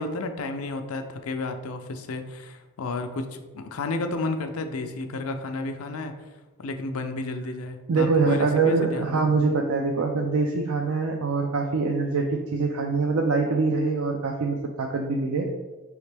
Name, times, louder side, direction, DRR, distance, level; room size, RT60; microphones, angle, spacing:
voice 1, 0.0-6.1 6.6-9.2, left 2 dB, 75° left, 7 dB, 0.5 m, -32 dB
voice 2, 7.9-15.5, right 4 dB, 80° right, 2 dB, 0.4 m, -24 dB
5.0 x 3.1 x 3.3 m, 1.2 s
head